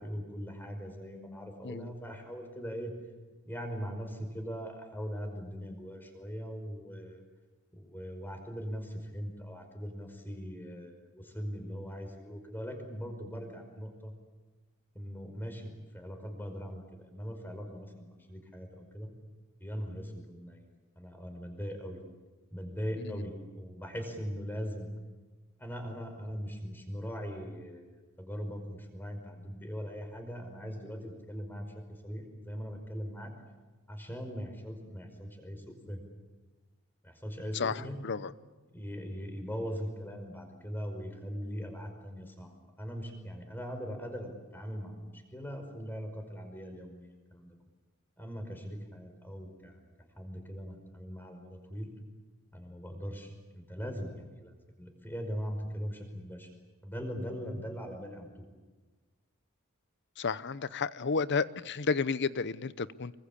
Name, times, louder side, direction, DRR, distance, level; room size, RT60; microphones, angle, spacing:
voice 1, 0.0-2.9 3.5-7.2 7.7-14.1 14.9-19.1 19.6-20.6 21.0-22.0 22.5-24.9 25.6-27.9 28.2-33.3 33.9-36.0 37.0-38.0 38.7-47.6 48.2-49.8 50.2-51.9 52.5-56.5 56.8-58.5, equal, 10° left, 4 dB, 5.2 m, -40 dB
voice 2, 37.5-38.3 60.2-63.1, left 4 dB, 55° left, 16 dB, 0.8 m, -32 dB
26.0 x 23.5 x 8.7 m, 1.3 s
head